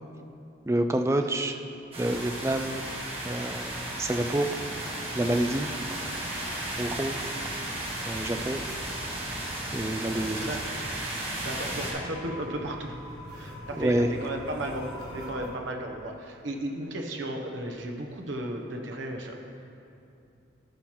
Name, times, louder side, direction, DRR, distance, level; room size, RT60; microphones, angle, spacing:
voice 1, 0.7-1.6 2.0-2.9 3.2-4.5 5.2-5.7 6.8-7.2 8.1-8.6 9.7-10.6 13.8-14.1, right 1 dB, 15° right, 7 dB, 0.3 m, -28 dB
sound 1, 1.9-11.9, right 1 dB, 30° right, 1.4 m, -34 dB
sound 2, 8.7-15.5, left 1 dB, 20° left, 1.8 m, -46 dB
voice 2, 11.4-13.0 13.2-19.4, right 1 dB, 80° right, 2 dB, 0.9 m, -35 dB
14.5 x 5.6 x 3.0 m, 2.7 s
head